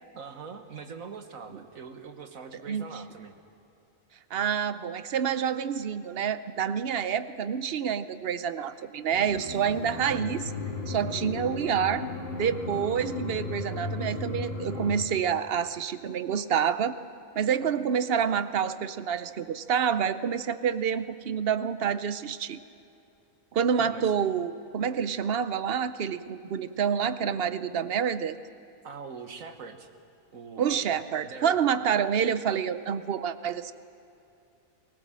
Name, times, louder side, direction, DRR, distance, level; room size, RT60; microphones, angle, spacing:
voice 1, 0.1-3.3 23.8-24.1 28.8-29.9 30.3-30.9 31.2-31.6, right 5 dB, 85° right, 6 dB, 1.8 m, -42 dB
voice 2, 4.3-10.5 10.9-12.0 12.3-16.9 17.4-22.6 23.5-28.4 30.6-33.7, right 7 dB, 55° right, 13 dB, 0.8 m, -28 dB
sound 1, 9.1-15.0, left 3 dB, 50° left, 2.1 m, -35 dB
20.0 x 19.0 x 7.6 m, 2.8 s
omnidirectional pair, 1.4 m